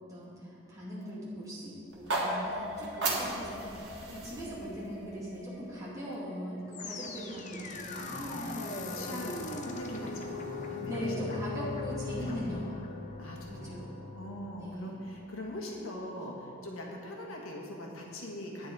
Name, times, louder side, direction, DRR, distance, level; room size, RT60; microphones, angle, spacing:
voice 1, 0.1-9.4 10.9-12.8 13.5-13.9 14.5-14.9, equal, 15° right, -9 dB, 2.5 m, -40 dB
sound 1, 1.9-6.0, right 2 dB, 55° right, 1.8 m, -36 dB
sound 2, 2.1-9.1 9.5-9.9, left 2 dB, ahead, 1.9 m, -48 dB
voice 2, 3.0-3.3 7.7-11.8 12.2-12.6 13.2-18.7, left 1 dB, 90° left, -1 dB, 1.5 m, -42 dB
sound 3, 6.7-15.9, left 3 dB, 35° left, 0.6 m, -40 dB
9.5 x 9.2 x 4.7 m, 2.8 s
head